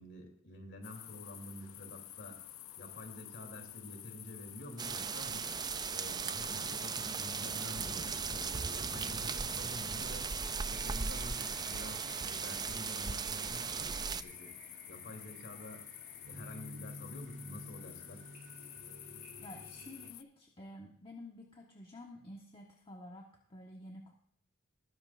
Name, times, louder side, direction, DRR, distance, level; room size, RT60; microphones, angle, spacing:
voice 1, 0.0-2.4 2.8-5.5 5.9-10.3 10.7-14.5 14.9-15.8 16.2-18.2, left 1 dB, 60° left, 3 dB, 3.1 m, -49 dB
sound 1, 0.8-20.2, left 13 dB, 85° left, 0.7 m, -50 dB
sound 2, 4.8-14.2, right 5 dB, 20° right, 0.4 m, -37 dB
sound 3, 10.7-20.1, right 1 dB, 45° right, 1.0 m, -53 dB
voice 2, 19.4-24.1, left 1 dB, 25° left, 0 dB, 1.3 m, -51 dB
20.0 x 10.5 x 2.5 m, 0.66 s
head